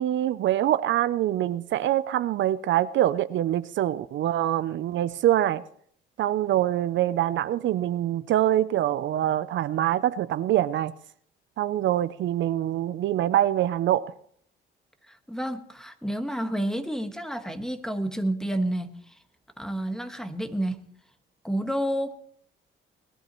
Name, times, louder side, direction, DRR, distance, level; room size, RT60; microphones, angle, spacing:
voice 1, 0.0-5.6 6.2-10.9 11.6-14.0, right 12 dB, 70° right, 0.5 m, -24 dB
voice 2, 15.1-19.2 19.6-20.9 21.4-22.2, right 1 dB, 5° left, 1.3 m, -30 dB
20.0 x 12.0 x 3.1 m
cardioid pair, 90°, 20 cm